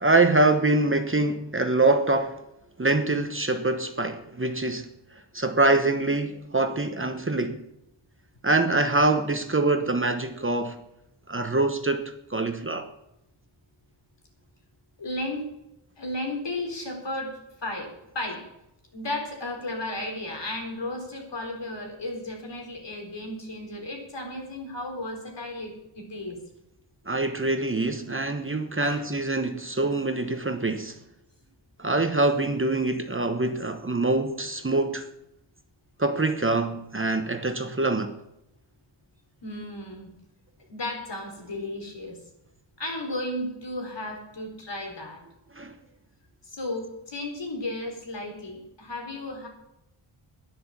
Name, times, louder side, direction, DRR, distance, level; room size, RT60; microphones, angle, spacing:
voice 1, 0.0-2.4 2.8-4.9 5.3-7.6 8.4-10.8 11.3-12.0 12.3-12.9 27.1-31.0 31.8-35.1 36.0-38.2 45.5-45.8, right 2 dB, 25° right, 1.1 m, -24 dB
voice 2, 15.0-15.4 16.0-18.4 18.9-26.4 28.8-29.0 39.4-40.1 40.7-42.2 42.8-45.2 46.4-49.5, left 1 dB, 60° left, 4.0 m, -34 dB
11.0 x 10.5 x 7.3 m
wide cardioid pair, 85°, 49 cm